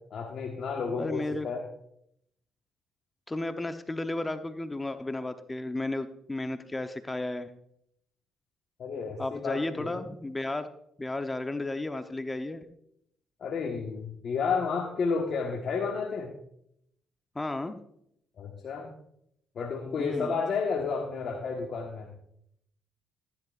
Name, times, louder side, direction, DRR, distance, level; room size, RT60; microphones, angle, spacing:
voice 1, 0.0-1.7 8.8-10.0 13.4-16.3 18.4-18.9 19.5-22.1, left 5 dB, 60° left, 1 dB, 1.4 m, -31 dB
voice 2, 1.0-1.5 3.3-7.5 9.2-10.7 11.0-12.7 17.3-17.8 20.0-20.4, left 2 dB, 20° left, 9 dB, 0.8 m, -33 dB
14.0 x 10.5 x 2.5 m, 0.73 s
supercardioid pair, 55°, 0 cm